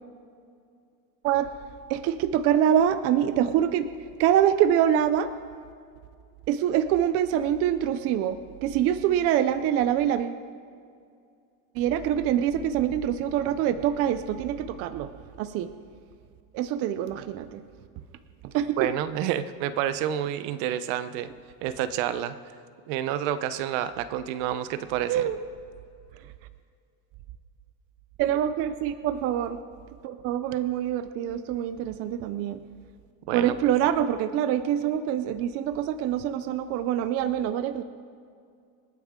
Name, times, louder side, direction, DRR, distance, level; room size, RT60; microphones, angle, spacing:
voice 1, 1.9-3.9 4.2-5.3 6.5-10.4 11.7-15.1 15.4-15.7 16.5-17.6 18.5-18.9 25.1-25.4 28.2-29.6 30.0-32.6 33.3-37.8, right 10 dB, 35° right, 11 dB, 0.5 m, -25 dB
voice 2, 18.8-21.3 21.6-22.4 22.9-25.2 33.3-33.5, right 11 dB, 65° right, 12 dB, 0.8 m, -29 dB
27.0 x 9.3 x 3.7 m, 2.3 s
cardioid pair, 165°, 41 cm